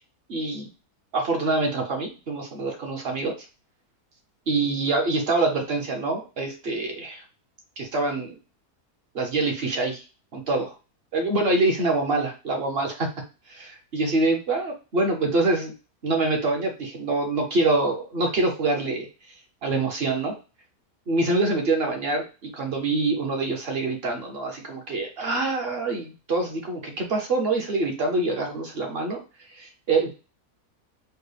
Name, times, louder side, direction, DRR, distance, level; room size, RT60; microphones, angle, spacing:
voice 1, 0.3-0.7 1.1-3.3 4.5-7.2 7.8-8.4 9.1-10.0 10.3-10.7 11.1-13.1 13.5-15.7 16.0-19.1 19.6-20.4 21.1-29.2 29.5-30.1, right 2 dB, 50° right, 3 dB, 0.8 m, -25 dB
4.5 x 2.1 x 3.3 m, 0.31 s
omnidirectional pair, 1.6 m